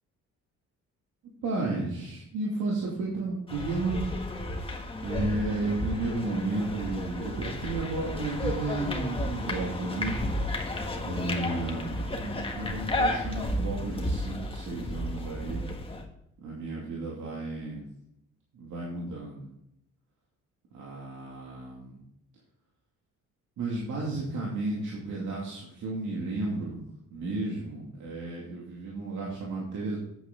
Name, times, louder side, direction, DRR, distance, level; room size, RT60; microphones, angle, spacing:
voice 1, 1.4-4.0 5.0-10.2 11.0-11.9 12.2-15.6 16.4-17.9 18.5-19.5 20.7-22.0 23.6-26.8 27.1-30.0, right 2 dB, 80° right, -4 dB, 2.6 m, -33 dB
sound 1, 3.5-16.0, left 1 dB, 20° left, 1.6 m, -32 dB
8.6 x 8.4 x 3.8 m, 0.80 s
cardioid pair, 90°, 30 cm